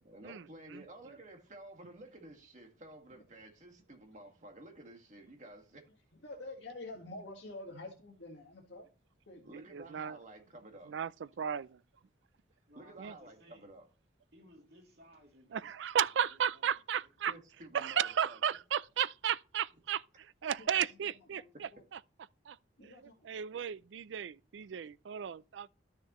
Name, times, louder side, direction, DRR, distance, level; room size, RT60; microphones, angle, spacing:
voice 1, 0.0-5.9 9.5-10.9 12.8-13.9 17.3-18.4, right 1 dB, 40° right, 1.9 m, -52 dB
voice 2, 6.2-8.9 9.3-9.5 20.6-20.7 21.0-21.8 22.8-23.3, left 2 dB, 85° left, 1.8 m, -48 dB
voice 3, 9.5-10.2 10.9-11.1 11.4-11.8 13.0-13.1 15.5-17.3 17.7-21.4 22.5-22.6 22.8-22.9 23.3-25.7, right 8 dB, 80° right, 0.4 m, -34 dB
voice 4, 12.7-13.7 14.3-15.7 16.3-17.1, equal, 60° right, 2.8 m, -61 dB
12.5 x 6.5 x 3.1 m
head